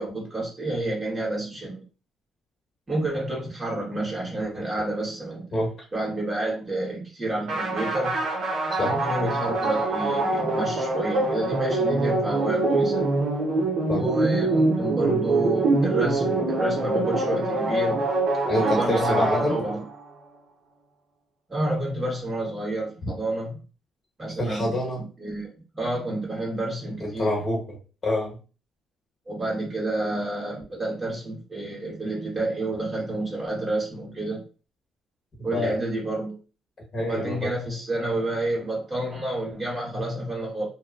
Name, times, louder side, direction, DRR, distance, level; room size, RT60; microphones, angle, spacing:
voice 1, 0.0-1.8 2.9-8.2 8.8-13.1 13.9-18.0 18.5-19.9 21.5-23.6 24.2-27.4 29.3-34.4 35.4-36.4 37.0-40.7, right 1 dB, 20° right, -5 dB, 1.4 m, -29 dB
sound 1, 7.5-20.0, right 2 dB, 70° right, 0.9 m, -24 dB
voice 2, 18.5-19.6 24.4-25.1 27.0-28.4 35.5-35.8 36.9-37.5, left 1 dB, 45° left, -2 dB, 1.2 m, -26 dB
2.8 x 2.3 x 2.4 m, 0.36 s
cardioid pair, 90°, 0 cm